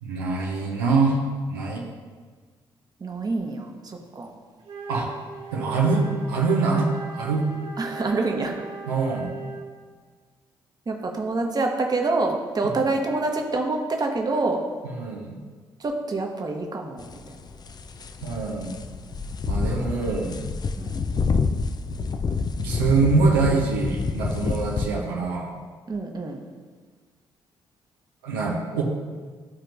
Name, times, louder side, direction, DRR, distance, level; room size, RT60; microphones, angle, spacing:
voice 1, 0.0-1.2 1.5-1.8 4.9-5.1 5.5-7.5 8.9-9.3 12.6-12.9 14.8-15.4 18.2-18.8 19.5-20.4 22.3-25.5 28.2-28.8, right 4 dB, 80° right, -3 dB, 0.9 m, -24 dB
voice 2, 3.0-4.3 7.8-8.5 10.9-14.6 15.8-17.2 20.8-21.0 25.9-26.4, right 3 dB, 35° right, 2 dB, 1.1 m, -26 dB
Wind instrument woodwind instrument, 4.6-9.8, right 4 dB, 55° right, 1.7 m, -38 dB
sound 1, 17.0-24.9, left 4 dB, 35° left, 0.5 m, -28 dB
12.5 x 4.4 x 2.6 m, 1.5 s
figure-of-eight pair, 45°, 12 cm